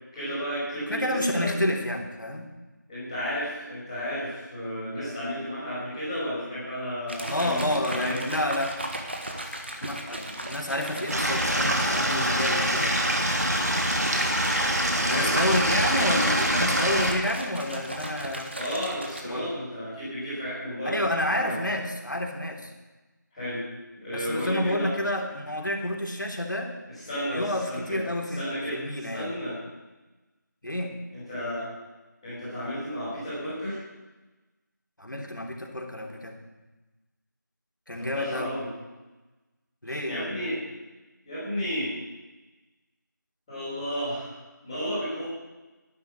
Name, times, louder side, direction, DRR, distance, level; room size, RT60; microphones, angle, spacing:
voice 1, 0.1-1.4 2.9-8.2 15.0-15.3 18.5-21.6 23.3-23.6 24.0-24.9 26.9-28.0 28.3-29.6 31.1-31.7 32.2-33.8 38.0-38.7 39.9-40.6 41.2-41.9 43.5-44.3 44.6-45.2, equal, 5° left, -21 dB, 4.2 m, -33 dB
voice 2, 0.9-2.5 7.3-8.8 9.8-13.0 15.0-18.6 19.2-19.5 20.8-22.7 24.1-26.7 27.3-29.3 30.6-31.0 35.0-36.4 37.9-38.5 39.8-40.4, left 1 dB, 75° left, 1 dB, 3.4 m, -29 dB
sound 1, 7.1-19.2, right 1 dB, 35° right, 1.6 m, -36 dB
Stream / Liquid, 11.1-17.1, equal, 55° right, 3.0 m, -25 dB
12.5 x 10.5 x 8.5 m, 1.1 s
figure-of-eight pair, 175°, 10 cm